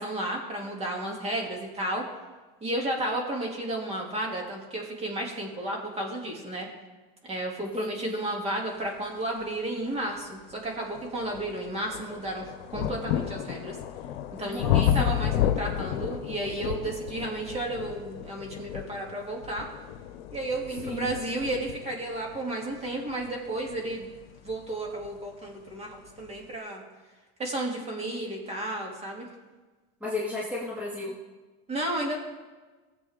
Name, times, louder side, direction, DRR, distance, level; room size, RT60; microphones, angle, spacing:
voice 1, 0.0-2.0 2.6-6.7 7.3-13.8 14.4-19.7 20.3-24.1 24.4-26.8 27.4-29.3 31.7-32.2, right 1 dB, 20° right, -1 dB, 2.8 m, -32 dB
voice 2, 7.6-8.2 14.5-15.1 20.8-21.1 30.0-31.1, left 2 dB, 5° right, -6 dB, 2.2 m, -34 dB
sound 1, 9.8-9.9 10.5-25.2 26.1-26.2, left 10 dB, 90° left, 0.8 m, -32 dB
18.0 x 7.8 x 3.7 m, 1.3 s
supercardioid pair, 130°, 29 cm